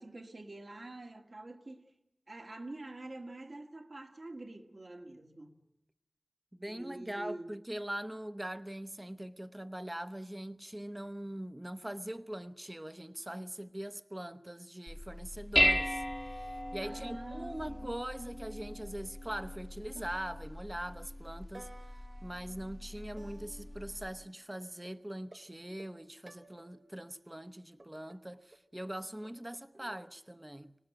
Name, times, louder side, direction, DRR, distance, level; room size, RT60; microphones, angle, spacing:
voice 1, 0.0-1.9 2.3-5.6 6.7-7.5 16.8-18.0, right 2 dB, 65° right, 2.1 m, -46 dB
voice 2, 6.5-16.0 16.3-21.7 22.2-30.8, right 1 dB, 20° right, 0.9 m, -42 dB
Dishes pots and pans, 14.9-24.1, equal, 10° left, 1.1 m, -36 dB
sound 1, 19.6-19.7 20.0-21.0 21.5-24.4 24.8-27.0 27.8-30.1, right 2 dB, 45° right, 1.2 m, -57 dB
25.0 x 18.5 x 8.9 m
wide cardioid pair, 60°, 0 cm